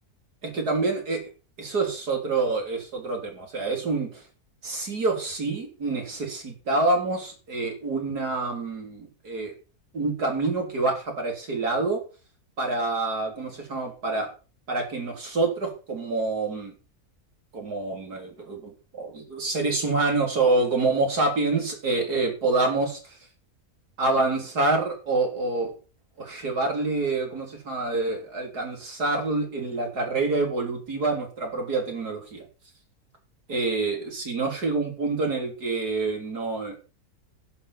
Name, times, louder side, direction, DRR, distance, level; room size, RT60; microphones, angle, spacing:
voice 1, 0.4-1.2 1.6-4.2 4.6-9.5 9.9-12.0 12.6-14.3 14.7-16.7 17.5-23.2 24.0-25.7 26.2-32.4 33.5-36.8, right 3 dB, 85° right, 2 dB, 4.2 m, -27 dB
11.5 x 6.1 x 8.6 m, 0.35 s
omnidirectional pair, 1.6 m